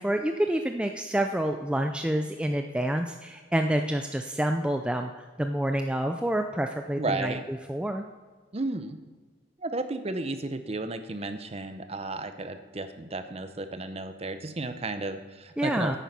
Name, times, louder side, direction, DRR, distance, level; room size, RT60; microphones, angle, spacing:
voice 1, 0.0-8.0 15.6-16.0, right 1 dB, 5° right, 5 dB, 0.4 m, -28 dB
voice 2, 7.0-7.5 8.5-9.0 9.6-16.0, right 2 dB, 30° right, 9 dB, 0.7 m, -33 dB
10.5 x 9.2 x 5.4 m, 1.4 s
head